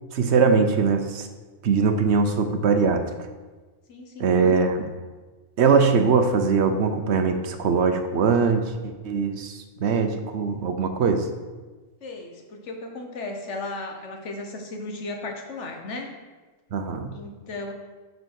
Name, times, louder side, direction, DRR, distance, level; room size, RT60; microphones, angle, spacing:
voice 1, 0.1-1.3 1.6-3.0 4.2-4.9 5.6-11.3 16.7-17.1, right 5 dB, 60° right, 6 dB, 1.0 m, -21 dB
voice 2, 3.9-4.6 12.0-16.1 17.1-17.7, left 2 dB, 65° left, 3 dB, 1.4 m, -35 dB
6.7 x 5.3 x 6.4 m, 1.3 s
omnidirectional pair, 1.3 m